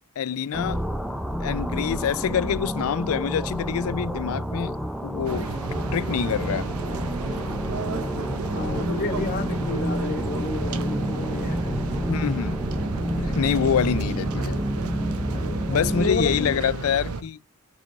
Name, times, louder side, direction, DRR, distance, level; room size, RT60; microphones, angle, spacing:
voice 1, 0.2-0.9 1.4-5.5 5.9-6.7 12.1-12.6 13.2-14.6 15.7-17.4, left 8 dB, 70° left, 0.4 m, -26 dB
sound 1, 0.5-16.7, equal, ahead, 0.4 m, -29 dB
sound 2, 5.2-17.2, right 4 dB, 75° right, 0.7 m, -32 dB
voice 2, 8.5-11.7 15.7-16.6, left 3 dB, 45° left, 1.1 m, -31 dB
6.1 x 3.6 x 5.1 m
head